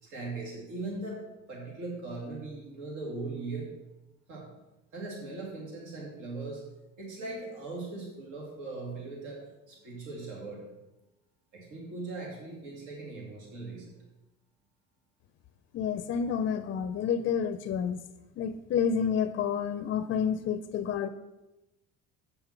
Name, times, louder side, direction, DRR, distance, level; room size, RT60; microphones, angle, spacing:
voice 1, 0.0-3.7 4.3-4.5 4.9-6.6 7.0-10.7 11.5-13.9, right 3 dB, 75° right, -2 dB, 2.6 m, -39 dB
voice 2, 15.7-18.0 18.4-21.1, left 7 dB, 40° left, 10 dB, 0.4 m, -29 dB
8.1 x 5.9 x 5.8 m, 1.0 s
cardioid pair, 135°, 31 cm